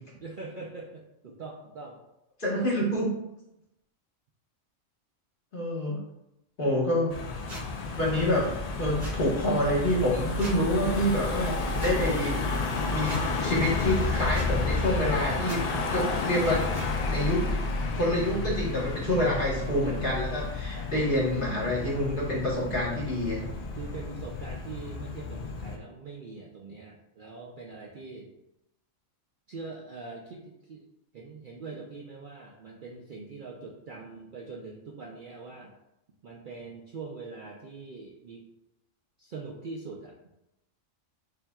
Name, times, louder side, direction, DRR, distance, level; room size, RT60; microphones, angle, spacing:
voice 1, 0.2-2.0 20.7-21.0 23.8-28.3 29.5-30.9 31.1-35.7 36.2-38.4 39.2-40.2, right 4 dB, 55° right, -1 dB, 0.6 m, -42 dB
voice 2, 2.4-3.1 5.5-6.0 6.6-7.2 7.9-8.5 8.8-12.5 12.9-15.6 15.9-16.6 17.0-17.5 17.9-23.5, left 1 dB, 45° left, -5 dB, 1.3 m, -27 dB
Car passing by / Engine, 7.1-25.8, left 3 dB, 75° left, 0.3 m, -31 dB
sound 1, 7.5-7.6 9.0-9.2 10.4-10.6 11.8-11.9 13.0-13.2 14.3-14.5 15.4-15.6 16.7-16.9, right 2 dB, 35° right, 0.9 m, -40 dB
6.9 x 2.7 x 2.3 m, 0.88 s
omnidirectional pair, 1.3 m